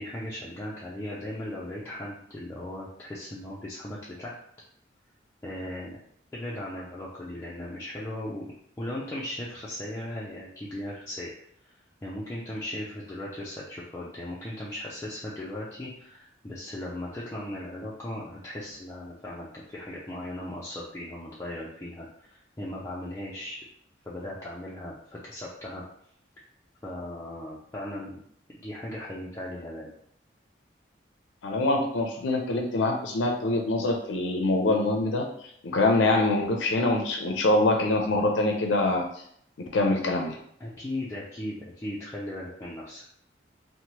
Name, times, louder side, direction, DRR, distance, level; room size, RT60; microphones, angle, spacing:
voice 1, 0.0-4.3 5.4-6.0 6.3-8.5 8.8-11.3 11.6-23.6 24.0-25.8 26.8-28.2 28.5-29.9 40.6-43.0, left 1 dB, 15° left, -7 dB, 0.3 m, -37 dB
voice 2, 31.4-35.3 35.6-39.0 39.6-40.4, left 2 dB, 85° left, 2 dB, 0.4 m, -24 dB
2.9 x 2.1 x 3.0 m, 0.67 s
head